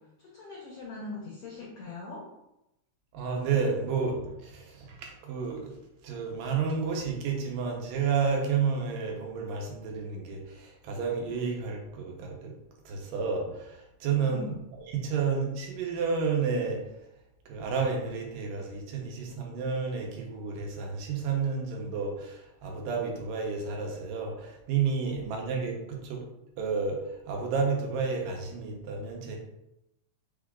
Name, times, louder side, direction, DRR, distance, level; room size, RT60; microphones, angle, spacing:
voice 1, 0.2-2.3 14.0-14.5 25.7-25.8, left 2 dB, 85° left, -3 dB, 1.3 m, -41 dB
voice 2, 3.1-5.7 6.0-12.5 12.9-14.6 14.9-16.8 17.5-26.2 26.6-27.0 27.3-29.4, right 5 dB, 90° right, 0 dB, 2.5 m, -31 dB
5.6 x 2.3 x 3.6 m, 0.88 s
omnidirectional pair, 3.8 m